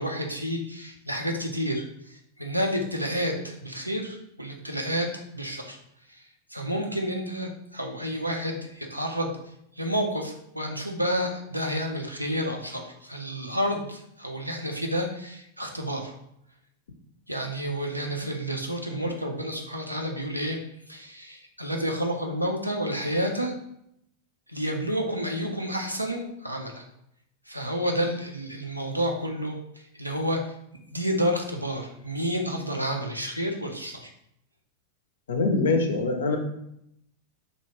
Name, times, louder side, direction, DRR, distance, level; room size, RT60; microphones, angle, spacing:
voice 1, 0.0-5.8 6.1-6.2 6.5-9.3 9.8-16.1 17.3-20.6 20.9-23.5 24.5-26.8 27.5-29.6 30.0-30.5 30.9-34.1, equal, 85° right, 2 dB, 0.4 m, -30 dB
voice 2, 35.3-36.4, left 3 dB, 65° left, 4 dB, 0.4 m, -23 dB
2.6 x 2.1 x 3.0 m, 0.76 s
figure-of-eight pair, 90°, 0 cm